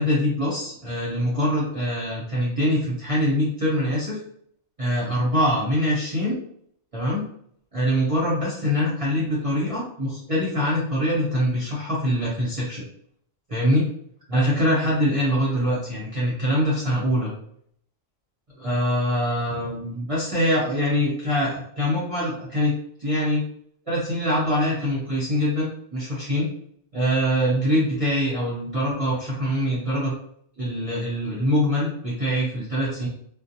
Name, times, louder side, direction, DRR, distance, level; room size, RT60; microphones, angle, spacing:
voice 1, 0.0-4.2 4.8-6.4 6.9-7.3 7.7-12.8 13.5-13.8 14.3-17.3 18.6-22.7 23.0-23.4 23.9-26.5 26.9-30.1 30.6-33.1, equal, 35° right, -6 dB, 0.6 m, -24 dB
2.5 x 2.0 x 2.7 m, 0.66 s
omnidirectional pair, 1.3 m